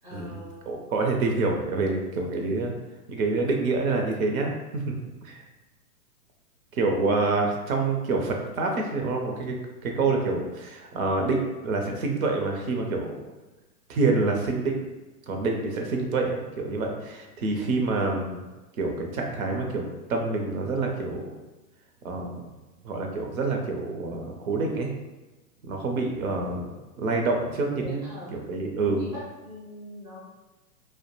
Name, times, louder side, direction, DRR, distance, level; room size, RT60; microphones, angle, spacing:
voice 1, 0.0-0.6 27.7-28.3 28.8-30.2, equal, 10° right, -12 dB, 0.4 m, -42 dB
voice 2, 0.7-2.7 3.1-4.8 5.2-5.4 6.8-9.5 9.8-13.1 13.9-14.9 15.3-18.4 18.8-21.3 22.0-22.5 22.8-24.9 25.7-26.7 27.0-28.0 28.3-29.0, right 3 dB, 60° right, 2 dB, 0.6 m, -27 dB
2.2 x 2.1 x 2.8 m, 1.1 s
hypercardioid pair, 145°, 47 cm